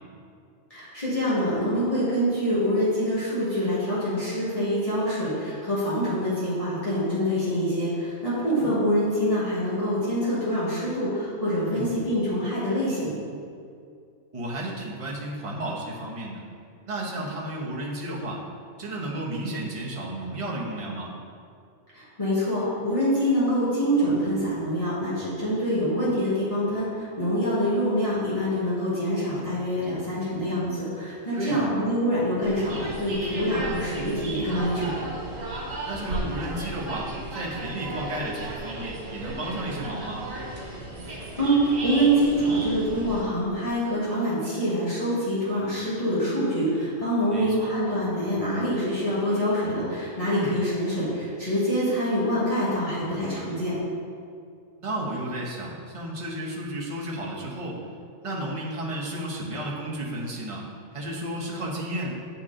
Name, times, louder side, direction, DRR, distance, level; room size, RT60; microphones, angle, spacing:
voice 1, 0.7-13.2 21.9-34.9 41.4-53.7, equal, 30° left, -11 dB, 1.5 m, -25 dB
voice 2, 14.3-16.4 16.8-18.4 18.8-21.1 31.3-31.7 33.5-33.7 35.9-40.3 47.3-47.7 50.3-50.5 54.8-57.8 58.2-60.6 60.9-62.1, right 1 dB, 30° right, -4 dB, 0.9 m, -33 dB
Lost Jacket, 32.4-43.2, right 1 dB, 80° right, 1.5 m, -35 dB
7.6 x 4.2 x 3.8 m, 2.3 s
omnidirectional pair, 1.3 m